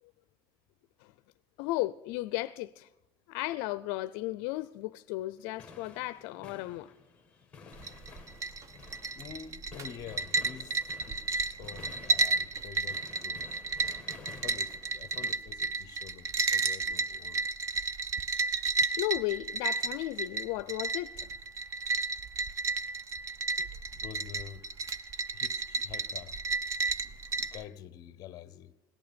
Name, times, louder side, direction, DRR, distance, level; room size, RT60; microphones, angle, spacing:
voice 1, 1.6-2.9 3.3-6.9 19.0-21.2 23.6-23.7, left 18 dB, 65° left, 0.4 m, -34 dB
sound 1, 5.4-15.4, left 5 dB, 10° left, 1.5 m, -52 dB
sound 2, 7.7-27.6, right 3 dB, 25° right, 0.6 m, -32 dB
voice 2, 9.2-13.6 14.3-17.5 24.0-24.6 25.3-26.4 27.0-28.7, left 9 dB, 35° left, 0.8 m, -48 dB
18.0 x 11.5 x 6.8 m
cardioid pair, 165°, 11 cm